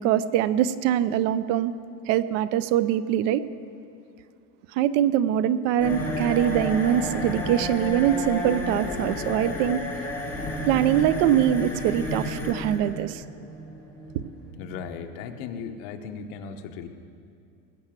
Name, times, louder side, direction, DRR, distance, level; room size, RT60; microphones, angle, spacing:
voice 1, 0.0-1.7 2.1-3.4 4.8-9.8 10.6-13.2 14.1-14.2, right 11 dB, 75° right, 15 dB, 0.7 m, -23 dB
sound 1, 5.8-15.4, left 1 dB, 5° left, 2.6 m, -32 dB
voice 2, 14.5-16.9, left 6 dB, 65° left, 6 dB, 1.2 m, -37 dB
19.5 x 7.9 x 7.4 m, 2.5 s
cardioid pair, 165°, 37 cm